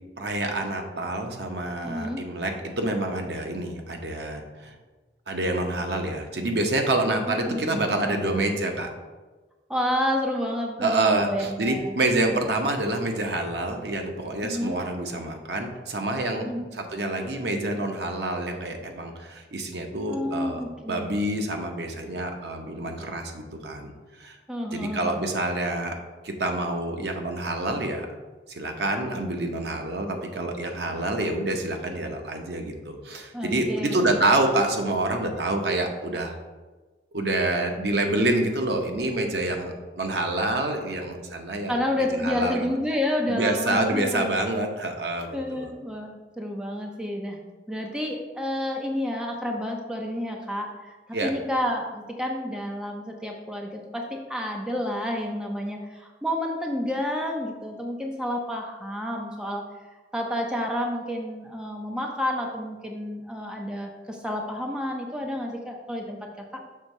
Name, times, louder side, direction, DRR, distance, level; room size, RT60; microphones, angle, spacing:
voice 1, 0.2-4.7 5.3-8.9 10.8-16.5 16.7-23.9 24.2-24.4 24.7-25.9 26.2-28.1 28.5-36.4 37.1-41.8 42.2-42.7 43.3-45.7 51.1-51.3, right 2 dB, 75° right, 3 dB, 0.9 m, -27 dB
voice 2, 1.8-2.2 7.3-8.4 9.7-12.0 14.4-14.8 16.4-16.6 20.1-21.2 24.5-25.2 33.3-34.0 41.7-44.4 45.3-47.4 47.7-51.0 51.2-59.6 60.1-66.6, left 1 dB, 5° right, 1 dB, 0.6 m, -30 dB
6.6 x 3.6 x 5.3 m, 1.3 s
head